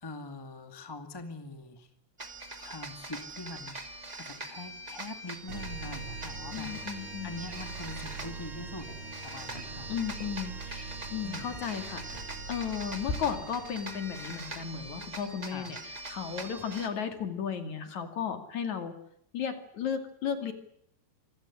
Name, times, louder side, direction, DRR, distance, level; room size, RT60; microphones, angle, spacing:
voice 1, 0.0-1.9 2.5-8.9 9.2-9.9 11.2-11.5 15.5-15.8, left 2 dB, 15° left, 8 dB, 0.7 m, -43 dB
sound 1, 2.2-16.9, right 2 dB, 25° right, 0.8 m, -43 dB
sound 2, 5.5-14.9, right 4 dB, 45° right, 3.9 m, -44 dB
voice 2, 6.5-7.4 9.9-15.8 16.1-18.9 19.3-20.5, left 7 dB, 50° left, 8 dB, 3.4 m, -35 dB
sound 3, 7.7-13.2, left 3 dB, 90° left, 9.4 m, -45 dB
26.5 x 15.5 x 9.9 m, 0.73 s
omnidirectional pair, 4.7 m